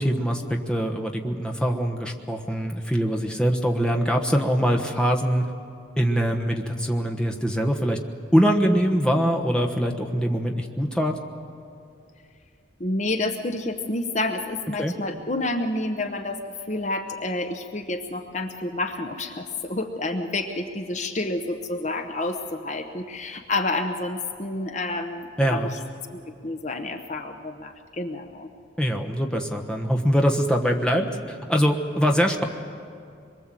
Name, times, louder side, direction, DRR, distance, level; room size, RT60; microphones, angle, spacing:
voice 1, 0.0-5.4 6.0-8.0 8.3-11.2 14.8-15.0 25.4-25.7 28.8-32.4, equal, 5° left, 2 dB, 1.2 m, -23 dB
voice 2, 12.8-16.4 16.7-25.6 26.1-28.5, left 2 dB, 35° left, 5 dB, 0.9 m, -29 dB
25.0 x 22.5 x 7.6 m, 2.5 s
head